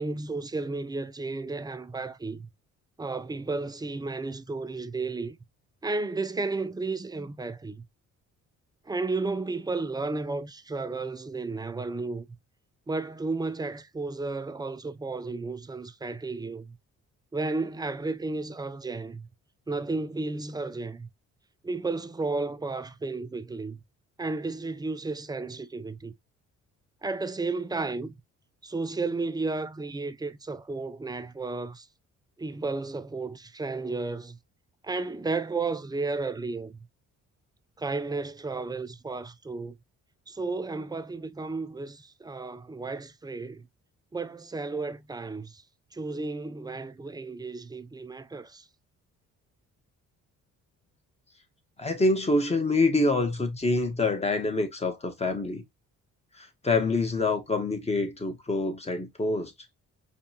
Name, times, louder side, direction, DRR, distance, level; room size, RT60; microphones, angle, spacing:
voice 1, 0.0-2.5 3.0-5.4 5.8-7.8 8.9-12.3 12.9-16.8 17.3-19.3 19.7-21.1 21.6-23.8 24.2-26.1 27.0-28.1 28.6-31.9 32.4-34.4 34.8-36.9 37.8-39.8 40.3-43.7 44.1-45.6 45.9-48.7, right 3 dB, 15° right, 0.4 m, -33 dB
voice 2, 51.8-55.6 56.3-59.5, left 2 dB, 20° left, 1.2 m, -26 dB
5.1 x 2.4 x 2.8 m
cardioid pair, 90°, 30 cm